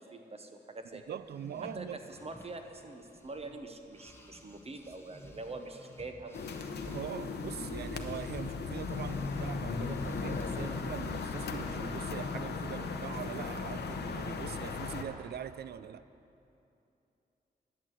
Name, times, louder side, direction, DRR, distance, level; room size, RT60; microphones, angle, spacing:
voice 1, 0.0-1.0 1.7-6.5, right 3 dB, 35° right, 5 dB, 1.0 m, -44 dB
voice 2, 0.9-2.0 6.9-16.0, right 9 dB, 70° right, 15 dB, 0.4 m, -42 dB
sound 1, 1.2-3.6 3.9-11.8, left 1 dB, 15° left, 1.1 m, -48 dB
sound 2, 6.3-15.0, left 4 dB, 80° left, 0.8 m, -37 dB
11.0 x 7.7 x 7.6 m, 2.8 s
cardioid pair, 80°, 17 cm